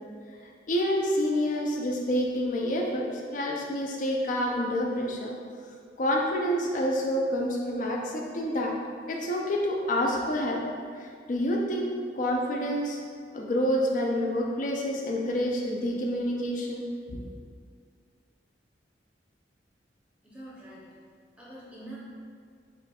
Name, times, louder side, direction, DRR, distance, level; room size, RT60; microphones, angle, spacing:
voice 1, 0.7-3.1 3.3-5.3 6.0-8.7 9.1-10.6 11.0-13.0 13.3-16.8, equal, 45° left, 0 dB, 0.4 m, -28 dB
voice 2, 20.2-20.8 21.4-22.0, right 1 dB, 5° right, -8 dB, 0.7 m, -44 dB
5.0 x 2.3 x 2.2 m, 2.1 s
head